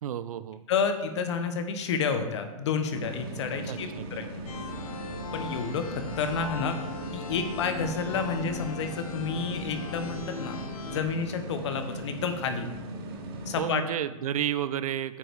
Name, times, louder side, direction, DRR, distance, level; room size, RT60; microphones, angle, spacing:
voice 1, 0.0-0.6 3.7-4.3 13.6-15.2, right 10 dB, 75° right, 15 dB, 0.5 m, -31 dB
voice 2, 0.7-4.3 5.3-6.7 7.1-10.6 10.8-12.7 13.5-13.8, left 6 dB, 50° left, 7 dB, 0.9 m, -30 dB
sound 1, 2.9-13.6, right 2 dB, 40° right, 1.0 m, -39 dB
sound 2, 4.5-11.0, left 4 dB, 75° left, 0.8 m, -40 dB
8.4 x 5.3 x 4.6 m, 1.1 s
hypercardioid pair, 170°, 19 cm